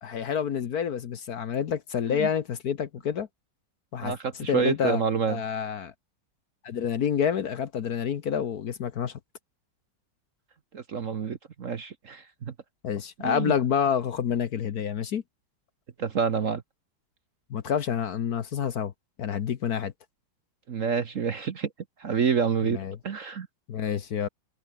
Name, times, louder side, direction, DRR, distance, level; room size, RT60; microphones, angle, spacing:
voice 1, 0.0-3.3 3.9-4.2 4.5-5.0 5.3-5.9 6.6-9.1 12.8-15.2 17.5-18.9 19.2-19.9 22.7-23.0 23.7-24.3, left 8 dB, 55° left, 1.4 m, -28 dB
voice 2, 4.0-5.4 10.7-12.5 13.2-13.5 16.0-16.6 20.7-21.7 22.0-22.8 23.0-23.5, right 6 dB, 45° right, 1.2 m, -28 dB
omnidirectional pair, 2.2 m